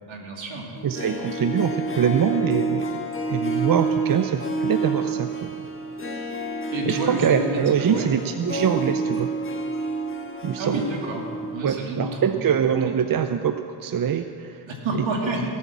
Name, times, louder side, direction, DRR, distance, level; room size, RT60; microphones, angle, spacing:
voice 1, 0.1-0.7 6.7-8.1 10.6-11.2 11.5-12.4 14.6-15.6, right 2 dB, 65° right, 0 dB, 2.8 m, -29 dB
Harp, 0.8-11.8 12.0-12.1, right 3 dB, 25° left, 1.5 m, -29 dB
voice 2, 0.8-3.0 3.3-5.5 6.9-9.3 10.4-10.8 11.6-14.6 14.9-15.0, right 8 dB, 45° right, 8 dB, 0.6 m, -24 dB
18.0 x 8.6 x 7.3 m, 2.5 s
cardioid pair, 80°, 49 cm